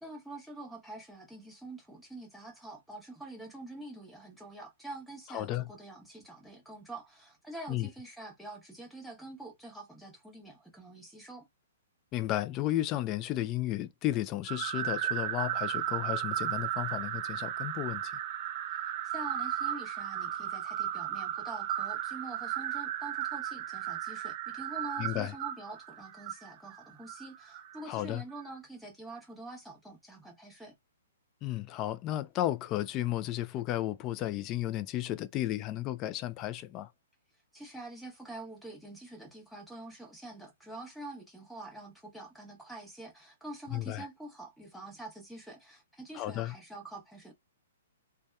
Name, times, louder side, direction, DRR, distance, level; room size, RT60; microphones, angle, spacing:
voice 1, 0.0-11.5 18.8-30.7 37.5-47.3, right 2 dB, ahead, 0.9 m, -46 dB
voice 2, 5.3-5.6 7.7-7.9 12.1-18.1 25.0-25.3 27.9-28.2 31.4-36.9 43.7-44.1 46.1-46.5, left 14 dB, 30° left, 0.3 m, -33 dB
sound 1, 14.4-27.8, right 11 dB, 40° right, 0.4 m, -35 dB
2.7 x 2.2 x 2.3 m
hypercardioid pair, 135°, 0 cm